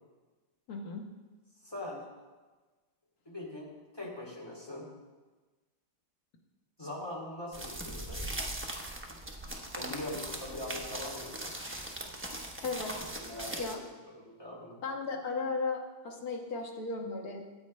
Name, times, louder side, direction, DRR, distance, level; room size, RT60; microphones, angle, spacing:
voice 1, 0.7-1.1 12.6-13.1 13.6-13.8 14.8-17.4, left 3 dB, 60° left, 1 dB, 1.8 m, -36 dB
voice 2, 1.6-2.1 3.2-4.9 6.8-8.2 9.8-11.6 12.9-14.8, left 1 dB, 15° left, -4 dB, 2.8 m, -42 dB
sound 1, 7.5-13.8, right 1 dB, 10° right, 0.6 m, -40 dB
14.5 x 8.3 x 3.2 m, 1.3 s
omnidirectional pair, 1.9 m